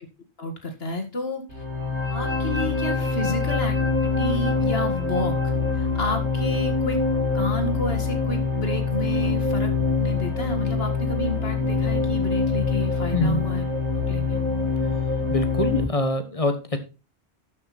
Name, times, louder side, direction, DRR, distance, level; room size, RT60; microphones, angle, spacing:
voice 1, 0.4-1.6 2.1-3.8 4.2-7.0 7.3-9.7 10.0-13.6 14.1-14.4, left 2 dB, 65° left, 5 dB, 2.3 m, -30 dB
sound 1, 1.5-15.8, left 4 dB, 85° right, 2.5 m, -24 dB
voice 2, 13.1-13.5 15.3-16.8, left 1 dB, 30° left, 8 dB, 1.4 m, -24 dB
12.5 x 6.2 x 4.2 m, 0.30 s
omnidirectional pair, 1.1 m